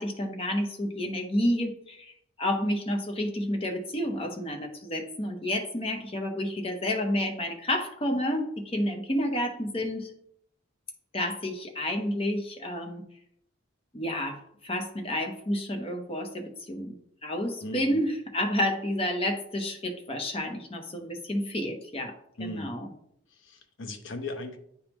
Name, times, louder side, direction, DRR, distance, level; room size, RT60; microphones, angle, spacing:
voice 1, 0.0-10.1 11.1-13.0 13.9-17.0 17.2-22.9, left 1 dB, 25° left, 3 dB, 0.7 m, -30 dB
voice 2, 17.6-18.0 22.4-22.8 23.5-24.6, left 1 dB, 60° left, 6 dB, 0.7 m, -37 dB
9.3 x 3.5 x 3.0 m, 0.72 s
head